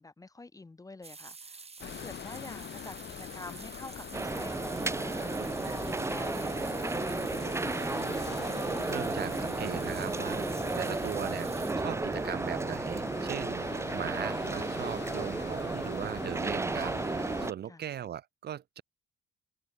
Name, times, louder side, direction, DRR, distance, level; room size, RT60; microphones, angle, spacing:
voice 1, 0.0-5.3 5.7-7.7 17.7-17.9, left 3 dB, 15° left, 0.8 m, -47 dB
sound 1, 1.0-11.7, right 4 dB, 30° right, 5.2 m, -48 dB
sound 2, 1.8-17.5, left 9 dB, 60° left, 3.2 m, -43 dB
sound 3, 4.1-17.5, right 3 dB, 15° right, 0.5 m, -33 dB
voice 2, 8.9-10.5 10.7-11.5 11.8-18.8, right 10 dB, 55° right, 0.8 m, -39 dB
cardioid pair, 90°, 20 cm